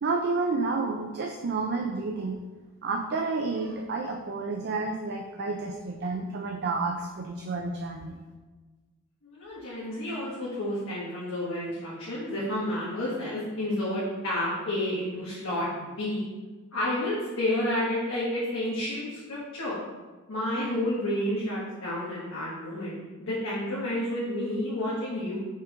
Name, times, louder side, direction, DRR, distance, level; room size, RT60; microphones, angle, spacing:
voice 1, 0.0-2.4 2.8-8.2, right 3 dB, 50° right, 2 dB, 0.5 m, -30 dB
voice 2, 9.2-16.2 16.7-19.8 20.3-25.4, left 1 dB, 60° left, -8 dB, 1.4 m, -30 dB
5.4 x 3.7 x 5.0 m, 1.3 s
head